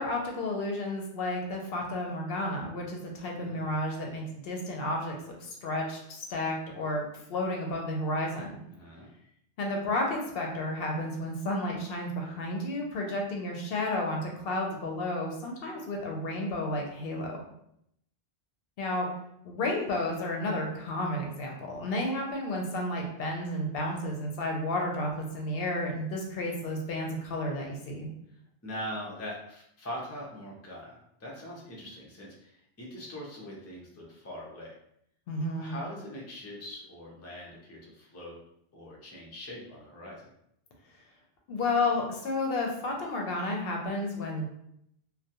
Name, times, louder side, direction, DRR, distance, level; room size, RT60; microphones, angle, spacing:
voice 1, 0.0-8.6 9.6-17.4 18.8-19.1 19.4-28.1 35.3-35.7 41.5-44.5, left 1 dB, 70° left, 0 dB, 0.7 m, -32 dB
voice 2, 8.7-9.1 28.6-34.8 35.6-38.4 38.7-40.3, equal, 25° left, -3 dB, 0.3 m, -42 dB
2.3 x 2.1 x 2.7 m, 0.74 s
omnidirectional pair, 1.1 m